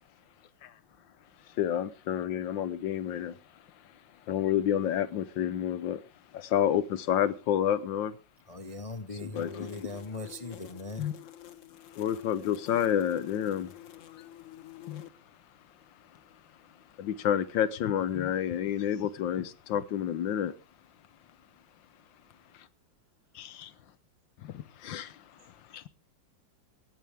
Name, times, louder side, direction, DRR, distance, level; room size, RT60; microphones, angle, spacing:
voice 1, 1.6-3.4 4.3-6.0 6.3-8.2 9.2-9.9 11.0-11.1 11.9-13.7 14.1-14.2 14.9-15.0 17.0-20.5 23.3-23.7 24.4-25.2 25.7-25.8, left 10 dB, 85° left, 1.6 m, -29 dB
voice 2, 8.5-11.1, left 2 dB, 35° left, 0.5 m, -39 dB
sound 1, 9.3-15.1, left 11 dB, 55° left, 1.0 m, -48 dB
voice 3, 23.0-23.5 24.6-24.9 25.4-25.9, right 2 dB, 85° right, 4.9 m, -72 dB
18.0 x 12.5 x 3.4 m
omnidirectional pair, 2.0 m